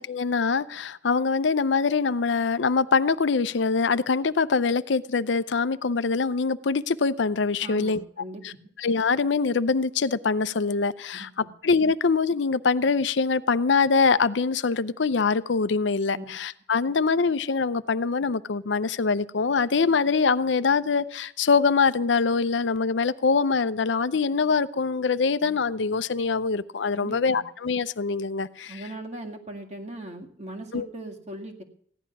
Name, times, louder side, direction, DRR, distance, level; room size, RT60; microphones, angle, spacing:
voice 1, 0.0-8.0 8.4-8.5 8.8-28.8 30.7-30.9, left 4 dB, 70° left, 14 dB, 0.6 m, -24 dB
voice 2, 7.6-8.4 11.1-11.5 16.1-16.3 26.9-27.4 28.7-31.6, right 1 dB, 35° right, 3 dB, 2.1 m, -39 dB
16.0 x 11.0 x 6.0 m, 0.64 s
head